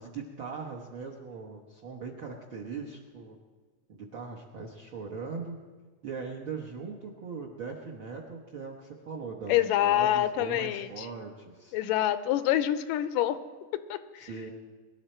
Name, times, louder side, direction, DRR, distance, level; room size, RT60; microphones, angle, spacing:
voice 1, 0.0-3.3 3.9-5.6 6.0-11.8 14.2-14.5, right 5 dB, 60° right, -2 dB, 1.3 m, -40 dB
voice 2, 9.5-11.1 11.7-13.4 13.9-14.3, left 12 dB, 90° left, 12 dB, 2.3 m, -26 dB
22.0 x 12.5 x 4.4 m, 1.4 s
omnidirectional pair, 3.8 m